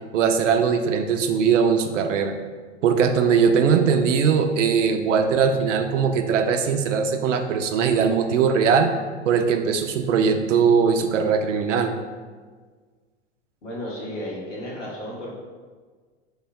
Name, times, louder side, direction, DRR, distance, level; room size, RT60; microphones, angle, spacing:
voice 1, 0.1-2.3 2.8-8.9 9.3-11.9, right 6 dB, 85° right, 7 dB, 0.5 m, -20 dB
voice 2, 13.6-15.3, equal, 85° left, -5 dB, 1.3 m, -33 dB
3.2 x 2.1 x 4.1 m, 1.5 s
hypercardioid pair, 110°, 36 cm